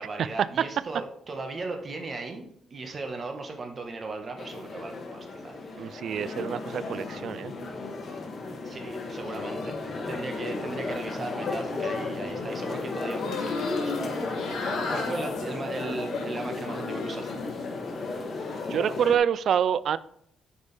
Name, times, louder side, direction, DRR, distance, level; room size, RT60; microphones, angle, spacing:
voice 1, 0.0-5.9 8.6-14.3 14.9-17.3, right 3 dB, 40° right, 4 dB, 1.4 m, -37 dB
sound 1, 4.4-19.2, left 3 dB, 45° left, 1.5 m, -34 dB
voice 2, 5.8-7.5 18.7-20.0, right 8 dB, 65° right, 17 dB, 0.3 m, -26 dB
sound 2, 13.1-17.5 17.9-18.6, left 3 dB, 80° left, 2.2 m, -34 dB
8.3 x 5.1 x 3.4 m, 0.68 s
cardioid pair, 90°, 0 cm